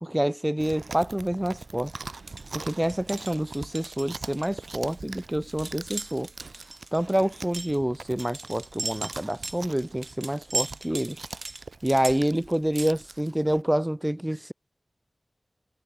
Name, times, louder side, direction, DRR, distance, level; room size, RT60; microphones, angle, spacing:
voice 1, 0.0-1.9 2.5-6.3 6.9-11.2 11.8-14.5, right 1 dB, 15° right, 0.9 m, -27 dB
Chewing mastication, 0.6-13.6, right 3 dB, 85° right, 5.3 m, -43 dB
sound 1, 2.2-12.9, right 2 dB, 50° right, 2.2 m, -37 dB
wide cardioid pair, 40°, 0 cm